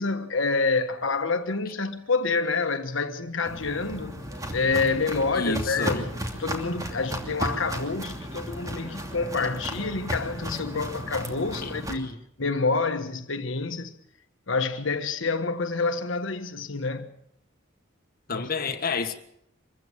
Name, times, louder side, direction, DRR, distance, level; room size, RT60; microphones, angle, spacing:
voice 1, 0.0-4.2 4.5-14.0 14.5-17.1 18.3-18.7, left 4 dB, 70° left, 1.4 m, -28 dB
Walk footsteps, 3.5-11.9, equal, 15° right, 2.9 m, -34 dB
voice 2, 5.3-6.0 11.6-12.2 18.3-19.1, left 4 dB, 45° left, 1.7 m, -30 dB
25.5 x 15.0 x 7.2 m
head